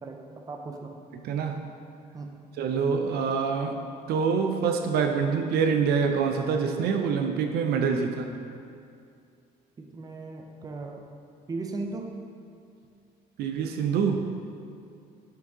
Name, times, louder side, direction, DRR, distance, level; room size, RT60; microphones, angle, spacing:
voice 1, 0.0-0.9 2.1-2.3 9.8-11.0 11.5-12.1, right 3 dB, 20° right, 2 dB, 0.5 m, -37 dB
voice 2, 1.2-1.6 2.6-3.8 4.1-8.3 13.4-14.3, right 6 dB, 70° right, 5 dB, 0.4 m, -25 dB
7.5 x 3.7 x 3.6 m, 2.4 s
cardioid pair, 110°, 17 cm